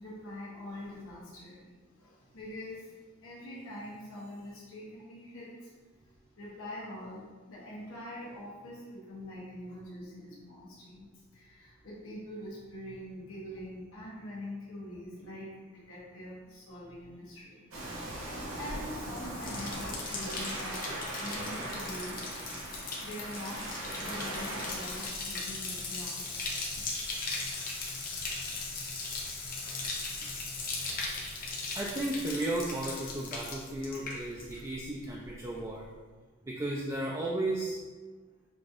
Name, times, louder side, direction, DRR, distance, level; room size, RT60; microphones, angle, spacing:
voice 1, 0.0-3.0 3.2-5.7 6.4-11.1 11.3-17.7 18.0-22.2 22.5-22.7 23.0-26.4 26.9-28.0, left 1 dB, 85° left, -6 dB, 1.0 m, -44 dB
Waves surf, 17.7-25.1, right 1 dB, 75° right, 1.0 m, -39 dB
Bathtub (filling or washing), 18.8-34.8 35.0-35.6, left 3 dB, 45° left, 0.7 m, -38 dB
voice 2, 31.7-35.9 36.4-37.8, right 1 dB, 15° right, -4 dB, 0.3 m, -34 dB
5.8 x 2.7 x 2.4 m, 1.3 s
head